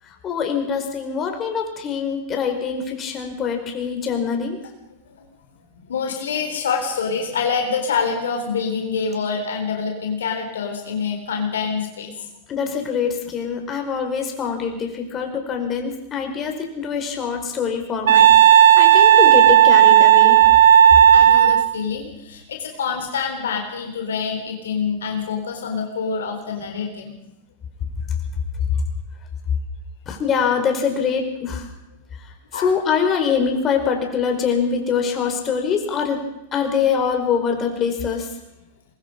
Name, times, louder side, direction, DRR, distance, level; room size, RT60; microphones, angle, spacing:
voice 1, 0.0-4.6 12.5-20.4 21.0-21.1 30.1-31.7 32.2-36.2 36.5-38.4, left 6 dB, 30° left, 3 dB, 5.2 m, -24 dB
voice 2, 5.8-12.1 21.1-27.1 32.5-32.7, left 5 dB, 75° left, 3 dB, 4.0 m, -26 dB
Wind instrument woodwind instrument, 18.1-21.7, right 10 dB, 75° right, 0.9 m, -11 dB
23.0 x 22.0 x 5.5 m, 0.90 s
hypercardioid pair, 95°, 0 cm